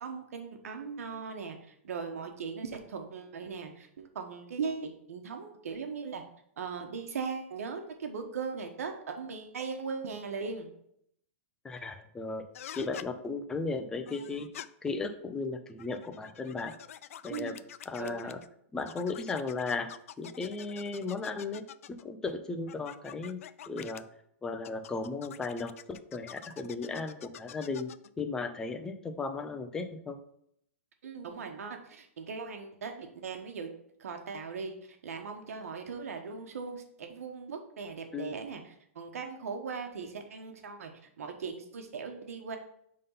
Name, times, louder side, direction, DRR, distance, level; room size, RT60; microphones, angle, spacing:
voice 1, 0.0-6.2 6.6-10.7 17.3-17.6 18.0-18.3 31.0-33.7 34.0-42.6, right 5 dB, 85° right, 5 dB, 1.3 m, -39 dB
voice 2, 11.6-12.4 12.8-14.5 14.8-16.8 17.2-17.5 17.9-18.4 18.7-19.9 20.2-24.0 24.4-27.9 28.2-30.2 38.1-38.4, left 3 dB, 10° left, 7 dB, 0.4 m, -36 dB
sound 1, 12.5-13.1 14.1-14.7 15.7-18.5 18.8-22.1 22.7-24.0 24.6-28.1, left 10 dB, 70° left, 0.3 m, -47 dB
5.3 x 3.8 x 5.5 m, 0.71 s
hypercardioid pair, 165°, 8 cm